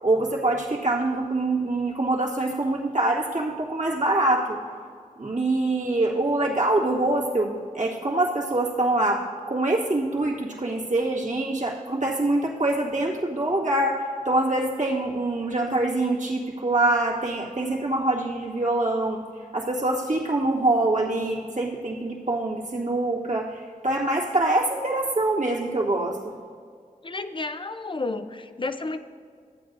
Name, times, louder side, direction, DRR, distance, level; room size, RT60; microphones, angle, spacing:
voice 1, 0.0-4.6 5.2-14.0 14.3-19.2 19.5-26.2, right 2 dB, 60° right, -4 dB, 1.9 m, -24 dB
voice 2, 27.0-29.0, left 3 dB, 35° left, 9 dB, 0.6 m, -31 dB
14.0 x 8.9 x 2.6 m, 2.1 s
wide cardioid pair, 55°, 14 cm